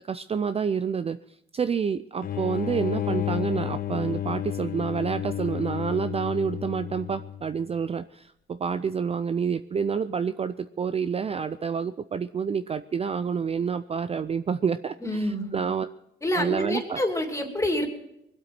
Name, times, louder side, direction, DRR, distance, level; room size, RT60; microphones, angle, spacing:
voice 1, 0.1-1.2 1.5-15.9 16.4-17.0, right 6 dB, 30° right, 12 dB, 0.4 m, -28 dB
sound 1, 2.2-7.6, left 11 dB, 45° left, 0.6 m, -31 dB
voice 2, 15.0-15.5 16.2-17.9, left 1 dB, 15° left, 4 dB, 2.8 m, -27 dB
21.5 x 8.2 x 6.0 m, 0.82 s
cardioid pair, 90°, 20 cm